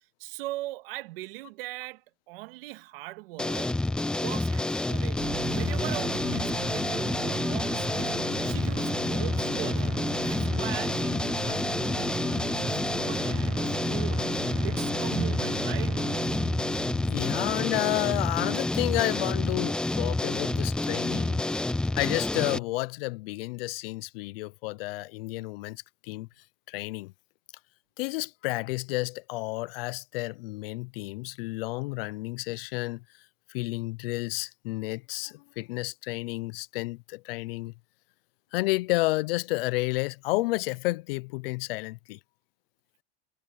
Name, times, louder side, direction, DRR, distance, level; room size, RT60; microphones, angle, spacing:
voice 1, 0.2-3.8 4.1-16.0, right 19 dB, 70° right, 2.0 m, -40 dB
sound 1, 3.4-22.6, left 2 dB, 5° left, 0.4 m, -28 dB
sound 2, 5.1-19.1, right 19 dB, 40° right, 1.2 m, -38 dB
voice 2, 17.1-21.4 21.9-26.3 26.7-27.1 28.0-33.0 33.5-37.7 38.5-42.2, left 21 dB, 75° left, 0.7 m, -31 dB
supercardioid pair, 160°, 29 cm